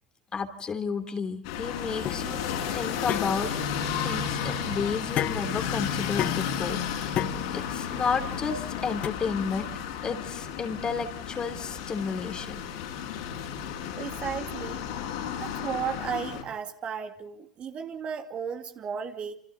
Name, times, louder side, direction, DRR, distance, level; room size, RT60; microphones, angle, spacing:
voice 1, 0.3-2.4 2.7-3.7 4.0-6.8 7.5-9.7 10.0-12.6, left 5 dB, 25° left, 7 dB, 3.2 m, -32 dB
sound 1, 1.4-16.4, left 8 dB, 65° left, 6.7 m, -33 dB
sound 2, 2.0-9.1, left 11 dB, 45° left, 1.1 m, -34 dB
voice 2, 14.0-14.8 15.4-19.3, right 7 dB, 35° right, 5 dB, 2.6 m, -34 dB
29.5 x 28.0 x 4.0 m, 0.64 s
hypercardioid pair, 80°, 3 cm